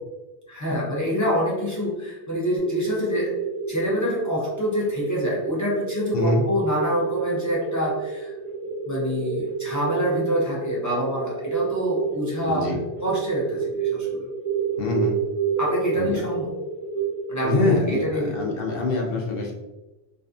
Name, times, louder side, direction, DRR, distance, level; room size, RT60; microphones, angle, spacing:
voice 1, 0.5-3.3 3.7-8.3 8.9-12.7 13.0-14.3 15.6-16.5 17.3-18.3, equal, 25° left, -6 dB, 0.4 m, -26 dB
sound 1, 2.6-18.6, right 6 dB, 35° right, 0.6 m, -30 dB
voice 2, 6.1-6.5 12.5-12.8 14.8-15.2 15.9-16.2 17.4-19.5, left 2 dB, 65° left, -1 dB, 0.7 m, -24 dB
2.4 x 2.4 x 2.4 m, 1.0 s
omnidirectional pair, 1.1 m